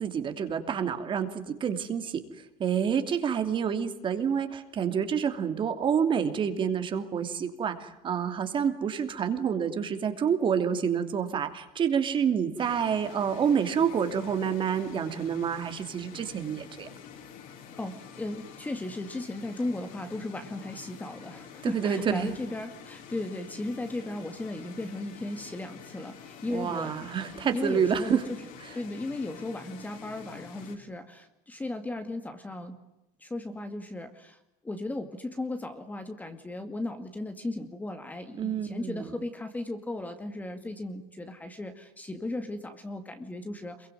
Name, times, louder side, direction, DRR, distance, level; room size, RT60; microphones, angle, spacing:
voice 1, 0.0-2.2 2.6-16.9 21.6-22.4 26.5-28.2 28.6-28.8 38.4-39.1, right 7 dB, 25° right, 8 dB, 2.9 m, -28 dB
sound 1, 12.6-30.8, left 7 dB, 50° left, 5.4 m, -48 dB
voice 2, 17.7-26.9 27.5-28.4 28.7-32.8 33.2-34.4 34.6-43.9, left 2 dB, 10° left, 7 dB, 2.2 m, -36 dB
27.0 x 23.5 x 9.3 m, 0.88 s
cardioid pair, 160°, 19 cm